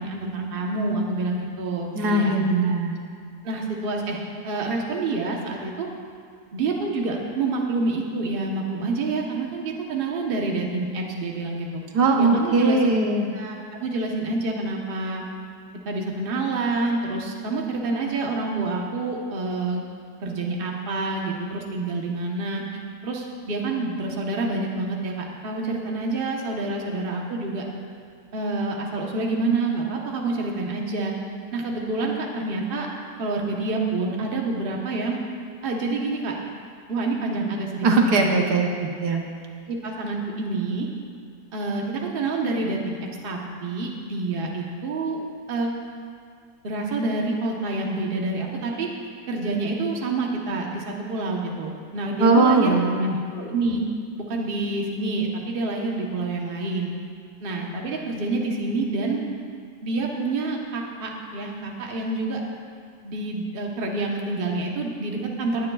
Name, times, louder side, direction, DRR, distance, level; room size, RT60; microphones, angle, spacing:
voice 1, 0.0-2.3 3.4-5.9 6.5-11.8 12.2-12.9 13.3-15.2 15.8-19.9 20.2-22.6 23.0-27.6 28.3-31.1 31.5-32.9 33.2-35.2 35.6-36.3 36.9-38.3 39.7-40.9 41.5-43.0 43.2-45.2 45.5-45.7 46.6-48.9 49.3-52.8 53.3-53.8 54.3-56.9 57.4-59.3 59.8-62.4 63.0-65.7, right 3 dB, 35° right, 0 dB, 1.1 m, -27 dB
voice 2, 1.9-2.9 11.9-13.3 37.8-39.2 52.2-53.2, right 3 dB, 75° right, 1 dB, 1.5 m, -20 dB
19.0 x 9.5 x 2.4 m, 2.2 s
omnidirectional pair, 1.8 m